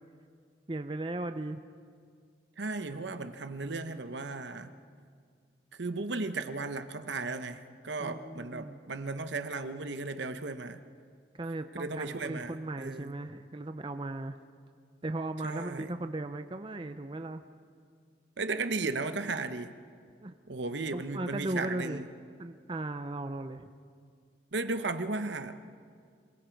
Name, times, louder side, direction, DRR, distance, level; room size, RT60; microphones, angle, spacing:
voice 1, 0.7-1.6 8.0-8.8 11.3-14.4 15.0-17.4 20.2-20.3 20.9-22.0 22.4-23.7, right 2 dB, 25° right, 8 dB, 0.5 m, -37 dB
voice 2, 2.6-4.7 5.8-10.8 11.7-13.2 15.4-15.9 18.4-19.7 20.5-22.1 24.5-25.5, right 3 dB, 75° right, 9 dB, 0.9 m, -35 dB
27.0 x 21.0 x 4.6 m, 2.1 s
head